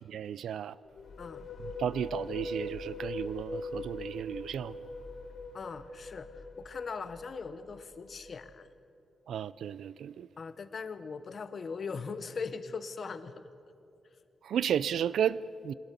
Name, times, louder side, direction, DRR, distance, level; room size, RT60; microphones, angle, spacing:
voice 1, 0.1-0.7 1.6-4.8 9.3-10.3 14.4-15.7, right 9 dB, 85° right, 0.4 m, -33 dB
sound 1, 0.8-8.5, left 2 dB, 65° left, 2.1 m, -42 dB
voice 2, 5.5-8.7 10.4-13.4, left 5 dB, 45° left, 1.0 m, -40 dB
24.0 x 17.5 x 6.9 m
wide cardioid pair, 150°, 0 cm